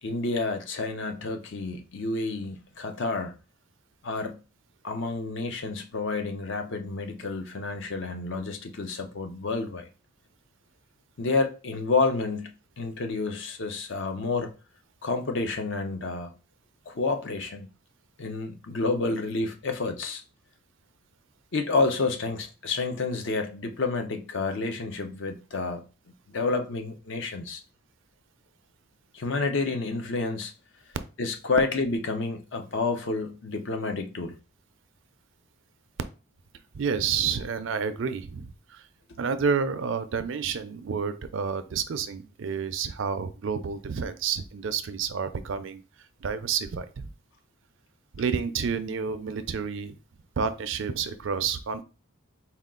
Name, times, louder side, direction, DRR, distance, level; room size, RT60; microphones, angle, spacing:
voice 1, 0.0-3.3 4.0-4.4 4.8-9.9 11.2-14.5 15.0-16.3 16.9-17.7 18.2-20.2 21.5-25.8 26.3-27.6 29.1-30.5 31.2-34.3, left 3 dB, 60° left, 0.6 m, -29 dB
voice 2, 36.7-38.8 39.2-45.8 46.2-47.1 48.1-50.0 50.4-51.8, right 6 dB, 60° right, 0.4 m, -29 dB
4.3 x 2.3 x 3.7 m
head